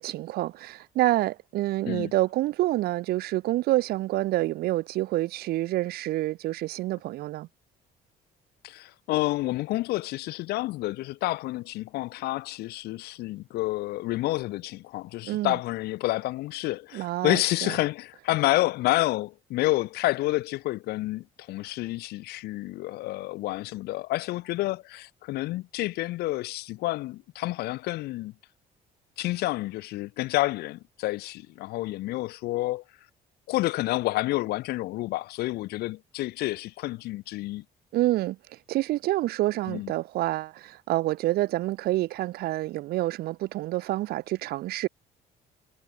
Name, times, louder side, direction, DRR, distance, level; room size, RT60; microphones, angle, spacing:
voice 1, 0.0-7.5 15.2-15.6 16.9-17.7 37.9-38.4 38.7-44.9, right 16 dB, 70° right, 0.5 m, -27 dB
voice 2, 8.6-28.3 29.2-32.8 33.5-37.6 39.7-39.9, left 18 dB, 70° left, 0.4 m, -29 dB
cardioid pair, 110°, 17 cm